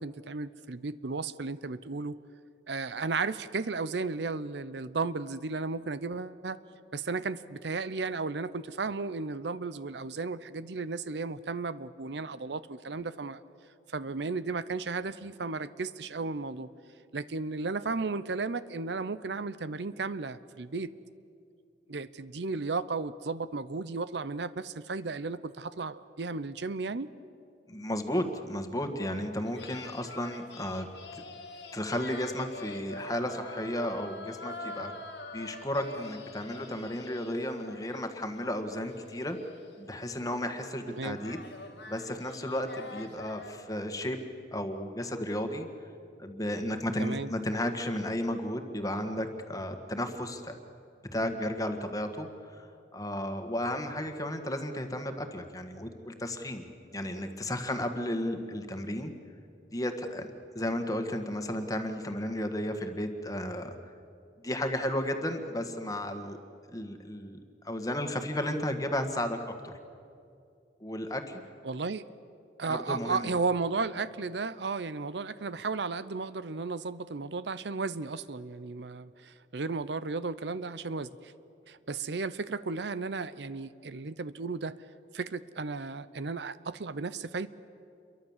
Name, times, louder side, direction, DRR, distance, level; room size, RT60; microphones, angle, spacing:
voice 1, 0.0-2.2 2.7-6.6 6.9-13.4 13.9-16.7 17.1-20.9 21.9-27.1 41.0-41.2 47.0-47.3 71.6-72.1 72.6-81.3 81.7-84.7 85.1-87.5, right 4 dB, 75° right, 15 dB, 0.7 m, -34 dB
voice 2, 27.7-30.9 31.1-31.2 31.7-34.9 35.3-39.4 39.8-41.4 41.9-44.2 44.5-45.7 46.2-50.5 51.1-52.7 52.9-56.7 56.9-59.1 59.7-60.3 60.5-63.7 64.4-66.4 66.7-69.7 70.8-71.4 72.7-73.3, left 1 dB, 20° left, 6 dB, 1.7 m, -33 dB
sound 1, 29.3-43.5, left 2 dB, 80° left, 1.9 m, -46 dB
28.0 x 23.0 x 7.4 m, 2.5 s
head